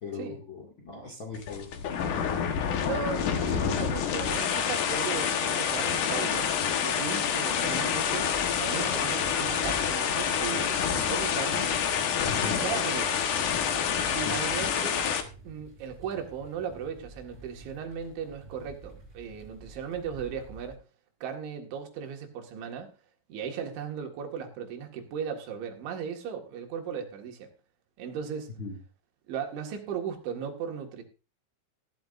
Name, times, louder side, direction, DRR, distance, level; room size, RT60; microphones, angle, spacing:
voice 1, 0.0-1.7 12.3-12.6 14.2-14.4 28.6-28.8, left 4 dB, 40° left, 1.9 m, -38 dB
sound 1, 1.3-15.2, left 8 dB, 65° left, 2.1 m, -28 dB
voice 2, 2.9-6.5 6.8-8.3 8.6-11.7 12.5-13.2 14.1-15.1 15.5-20.8 21.2-22.9 23.3-27.5 28.0-28.5 29.3-31.0, right 7 dB, 75° right, 4.2 m, -36 dB
sound 2, 8.2-20.8, right 2 dB, 15° right, 5.8 m, -48 dB
16.0 x 12.5 x 2.6 m
omnidirectional pair, 5.4 m